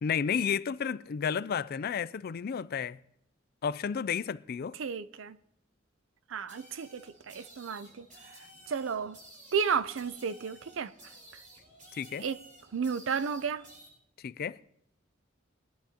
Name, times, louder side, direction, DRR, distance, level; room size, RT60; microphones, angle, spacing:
voice 1, 0.0-3.0 3.6-4.8 11.9-12.3 14.2-14.6, left 7 dB, 50° left, 0.4 m, -32 dB
voice 2, 4.8-5.4 6.3-8.1 8.7-9.2 9.5-10.9 12.2-12.4 12.7-13.6, right 6 dB, 70° right, 0.5 m, -32 dB
sound 1, 6.5-13.9, right 1 dB, 40° right, 5.9 m, -54 dB
21.0 x 11.0 x 2.9 m
head